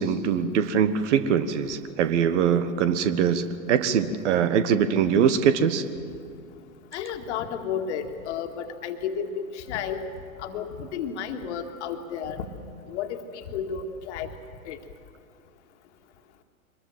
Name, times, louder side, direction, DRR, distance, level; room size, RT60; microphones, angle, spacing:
voice 1, 0.0-5.8, right 7 dB, 55° right, 12 dB, 1.4 m, -23 dB
voice 2, 6.9-10.0 10.4-12.4 12.9-14.3 14.7-14.8, left 7 dB, 55° left, 6 dB, 2.0 m, -32 dB
23.5 x 21.0 x 7.7 m, 2.3 s
figure-of-eight pair, 95°, 43 cm